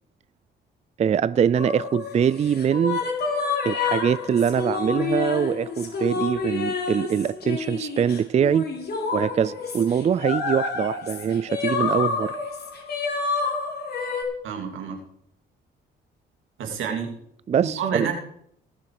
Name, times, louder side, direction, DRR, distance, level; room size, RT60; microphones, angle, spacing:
voice 1, 1.0-3.0 3.6-8.7 9.1-12.4 17.5-18.1, right 8 dB, 35° right, 0.4 m, -23 dB
sound 1, 1.5-14.2, left 5 dB, 55° left, 3.6 m, -29 dB
voice 2, 14.4-15.0 16.6-17.1 17.6-18.1, right 7 dB, 85° right, 2.8 m, -28 dB
19.5 x 7.2 x 4.9 m
cardioid pair, 90°, 20 cm